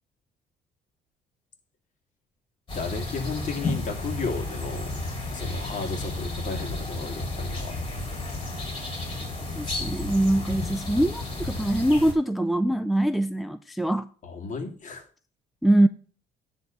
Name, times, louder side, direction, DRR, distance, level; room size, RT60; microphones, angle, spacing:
voice 1, 2.7-4.9 5.3-7.8 14.2-15.1, left 4 dB, 45° left, 2.5 m, -34 dB
sound 1, 2.7-12.1, left 2 dB, 30° left, 4.3 m, -32 dB
voice 2, 9.6-14.1 15.6-15.9, right 1 dB, ahead, 0.4 m, -23 dB
10.5 x 3.7 x 6.7 m
cardioid pair, 110°, 17 cm